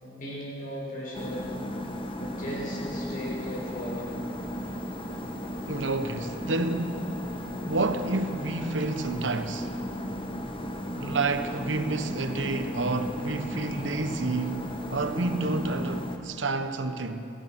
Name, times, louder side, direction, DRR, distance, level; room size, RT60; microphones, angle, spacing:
voice 1, 0.0-1.5 2.2-4.1, equal, 45° left, 6.1 m, -37 dB
sound 1, 1.1-16.2, equal, 30° left, 1.5 m, -35 dB
voice 2, 5.7-7.2 7.6-9.7 11.0-17.2, right 2 dB, 90° right, 1.2 m, -29 dB
27.5 x 17.0 x 6.1 m
head